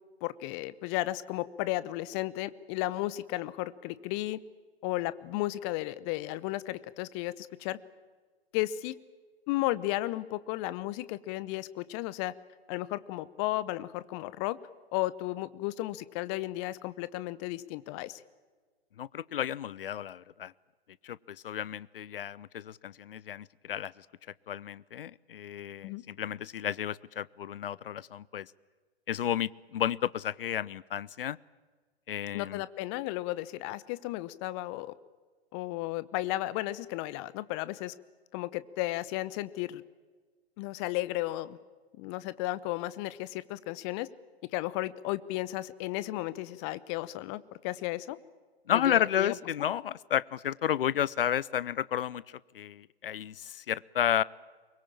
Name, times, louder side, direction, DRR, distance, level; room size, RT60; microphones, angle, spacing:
voice 1, 0.2-4.4 4.8-7.8 8.5-9.0 9.5-12.3 12.7-14.6 14.9-18.2 25.8-26.0 32.3-34.9 35.5-37.9 38.3-39.8 40.6-41.6 42.0-44.1 44.5-48.2 48.8-49.3, left 17 dB, 25° left, 17 dB, 0.9 m, -34 dB
voice 2, 19.0-20.5 21.0-23.9 24.5-28.5 29.1-31.4 32.1-32.6 48.7-52.2 52.5-54.2, left 10 dB, 60° left, 22 dB, 0.7 m, -32 dB
23.5 x 21.5 x 8.9 m, 1.4 s
figure-of-eight pair, 120°, 32 cm